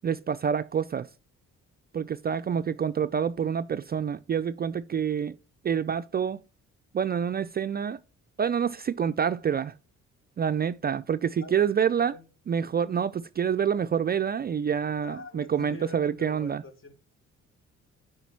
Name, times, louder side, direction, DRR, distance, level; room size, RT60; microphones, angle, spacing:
voice 1, 0.0-1.1 1.9-5.4 5.6-6.4 6.9-8.0 8.4-9.7 10.4-12.1 12.5-16.6, right 7 dB, 35° right, 0.4 m, -27 dB
voice 2, 11.4-12.2 15.0-16.9, left 3 dB, 45° left, 1.9 m, -44 dB
8.2 x 5.1 x 4.5 m
cardioid pair, 90°, 30 cm